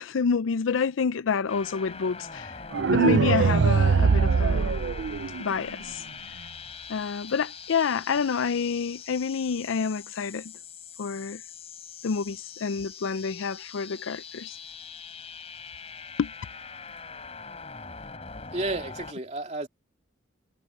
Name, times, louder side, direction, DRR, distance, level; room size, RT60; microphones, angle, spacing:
voice 1, 0.0-2.6 2.9-4.8 5.4-6.0 6.9-10.5 11.0-11.4 12.0-14.6 16.2-16.3, left 5 dB, 80° left, 0.5 m, -28 dB
sound 1, 1.5-19.1, left 5 dB, 30° left, 3.7 m, -42 dB
sound 2, 2.7-5.7, right 5 dB, 60° right, 0.4 m, -22 dB
voice 2, 18.3-19.7, right 2 dB, 35° right, 2.7 m, -32 dB
head